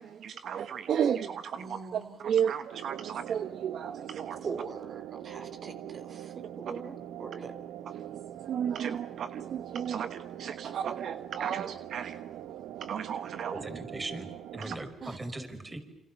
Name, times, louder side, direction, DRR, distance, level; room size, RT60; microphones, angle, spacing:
voice 1, 0.0-4.5 6.7-6.8 7.9-8.2 8.4-12.3 12.7-13.6 14.7-14.8, right 8 dB, 65° right, 11 dB, 1.2 m, -33 dB
voice 2, 1.6-2.2 4.4-7.5 15.0-15.2, right 5 dB, 50° right, 8 dB, 3.2 m, -41 dB
sound 1, 2.7-14.6, right 11 dB, 90° right, 1.2 m, -43 dB
voice 3, 13.5-15.8, right 2 dB, 20° right, 7 dB, 5.7 m, -39 dB
29.0 x 27.5 x 7.1 m, 0.81 s
cardioid pair, 90°, 0 cm